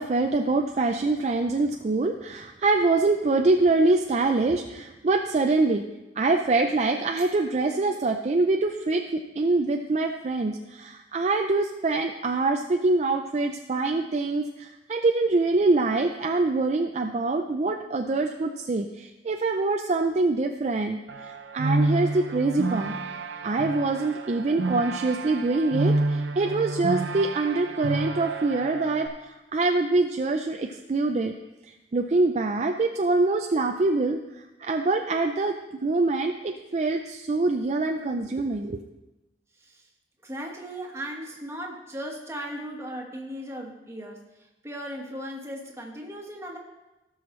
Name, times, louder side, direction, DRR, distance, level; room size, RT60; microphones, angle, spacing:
voice 1, 0.0-5.8 6.2-23.0 23.4-31.3 31.9-38.8, right 3 dB, 40° right, 4 dB, 0.4 m, -25 dB
sound 1, 21.1-29.1, right 2 dB, 90° right, 0.8 m, -29 dB
voice 2, 40.2-46.6, equal, 15° right, 0 dB, 1.4 m, -37 dB
17.0 x 6.3 x 3.1 m, 1.0 s
head